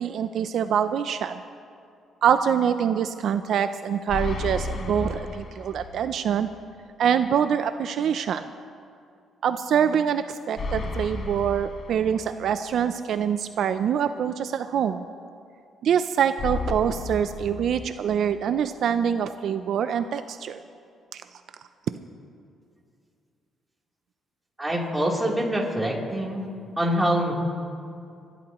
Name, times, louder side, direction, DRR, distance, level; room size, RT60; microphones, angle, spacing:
voice 1, 0.0-1.4 2.2-6.5 7.0-8.5 9.4-15.0 15.8-20.6 21.1-21.2 21.9-22.0, right 8 dB, 70° right, 10 dB, 0.4 m, -25 dB
sound 1, 4.1-6.1 6.4-6.5 10.6-12.6 16.4-18.4, left 3 dB, 55° left, 1.9 m, -33 dB
voice 2, 24.6-26.5 26.8-27.3, equal, 10° right, -3 dB, 3.4 m, -25 dB
28.5 x 12.0 x 3.0 m, 2.4 s
cardioid pair, 90°, 0 cm